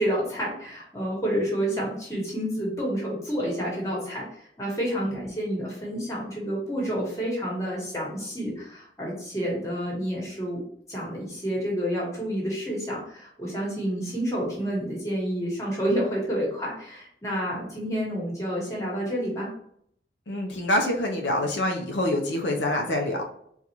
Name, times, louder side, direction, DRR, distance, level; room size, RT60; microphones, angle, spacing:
voice 1, 0.0-4.3 4.6-10.6 10.9-19.5, equal, 15° left, -4 dB, 1.1 m, -29 dB
voice 2, 20.3-23.2, left 1 dB, 85° left, 1 dB, 0.6 m, -26 dB
3.9 x 2.4 x 2.8 m, 0.67 s
head